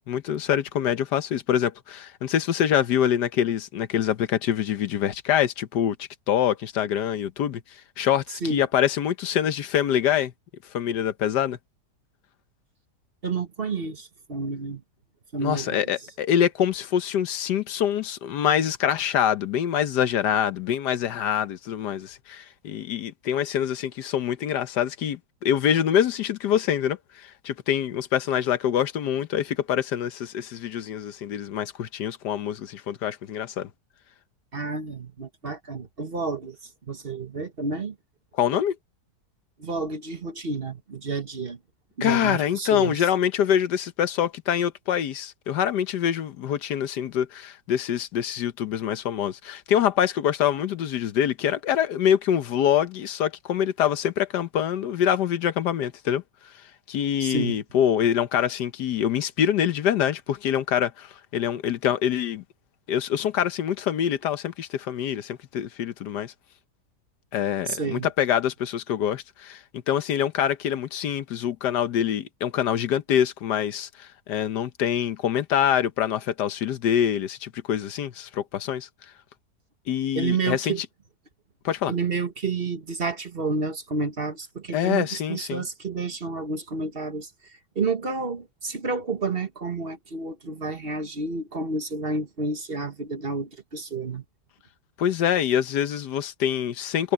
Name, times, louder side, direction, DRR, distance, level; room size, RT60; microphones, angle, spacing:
voice 1, 0.1-7.6 8.0-10.3 10.7-11.6 15.4-33.7 38.4-38.8 42.0-56.2 56.9-62.4 62.9-66.3 67.3-78.9 79.9-80.9 81.6-81.9 84.7-85.6 95.0-97.1, left 9 dB, 90° left, 1.5 m, -25 dB
voice 2, 13.2-14.8 15.3-15.9 34.5-37.9 39.6-41.6 42.0-43.1 57.2-57.6 67.7-68.1 80.1-80.8 81.9-87.3 87.7-94.2, right 4 dB, 40° right, 1.4 m, -30 dB
omnidirectional pair, 1.7 m